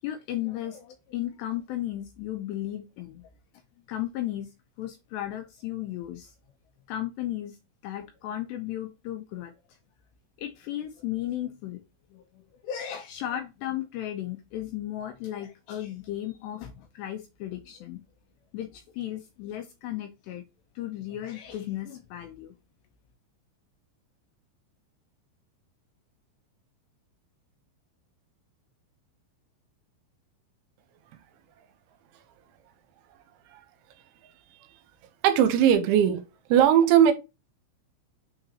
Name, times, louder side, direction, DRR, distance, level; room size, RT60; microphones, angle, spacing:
voice 1, 0.0-3.2 3.9-4.5 4.8-6.3 6.9-7.6 7.8-9.5 10.4-11.8 12.1-18.0 18.5-20.4 20.8-22.5, left 12 dB, 80° left, 2.6 m, -35 dB
voice 2, 35.2-36.2 36.5-37.1, right 9 dB, 80° right, 3.2 m, -19 dB
8.8 x 3.9 x 2.8 m
omnidirectional pair, 5.6 m